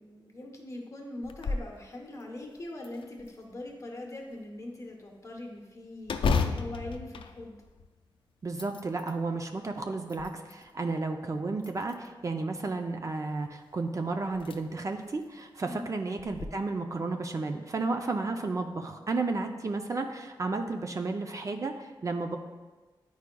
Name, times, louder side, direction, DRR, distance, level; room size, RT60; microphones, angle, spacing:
voice 1, 0.0-7.6 15.6-15.9, left 1 dB, 35° left, 1 dB, 0.9 m, -42 dB
sound 1, 1.2-1.7 2.2-2.3 2.8-3.6 6.0-8.0 8.4-9.2 9.8-10.7 11.6-12.2 13.7-13.8 14.3-14.6 15.0-15.1 16.2-16.5, left 4 dB, 85° left, 0.4 m, -32 dB
voice 2, 8.4-22.4, right 3 dB, 40° right, 5 dB, 0.4 m, -32 dB
9.8 x 4.7 x 2.2 m, 1.3 s
wide cardioid pair, 145°, 9 cm